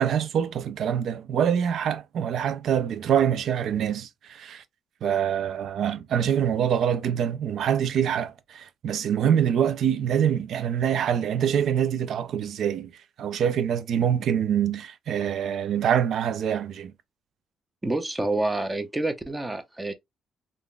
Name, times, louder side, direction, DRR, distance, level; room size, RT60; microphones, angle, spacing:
voice 1, 0.0-4.6 5.0-12.9 13.2-16.9, right 9 dB, 70° right, 0.4 m, -25 dB
voice 2, 17.8-19.9, right 2 dB, 15° right, 0.6 m, -28 dB
3.6 x 2.5 x 2.2 m
cardioid pair, 90°, 0 cm